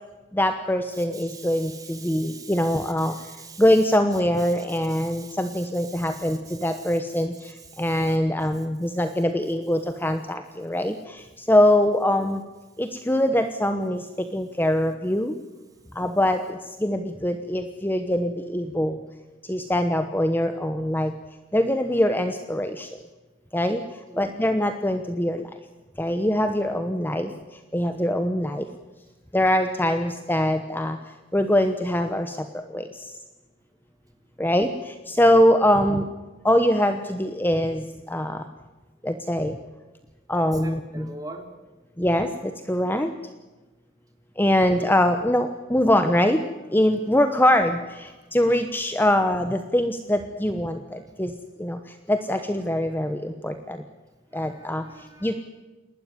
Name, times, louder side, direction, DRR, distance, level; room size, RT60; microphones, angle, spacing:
voice 1, 0.3-3.1 3.6-12.4 12.8-15.3 15.9-19.0 19.4-21.1 21.5-22.9 23.5-25.5 26.0-27.3 27.7-28.7 29.3-31.0 31.3-33.1 34.4-36.1 36.4-38.4 39.0-39.6 40.3-41.1 42.0-43.1 44.4-46.4 46.7-51.3 51.6-53.8 54.3-54.8 55.2-55.3, left 1 dB, 10° left, 7 dB, 1.0 m, -23 dB
voice 2, 0.9-8.0 24.1-24.3 40.3-41.5 44.5-44.7 48.2-48.3 54.3-55.4, right 3 dB, 20° right, 4 dB, 3.4 m, -44 dB
28.5 x 12.5 x 9.7 m, 1.2 s
head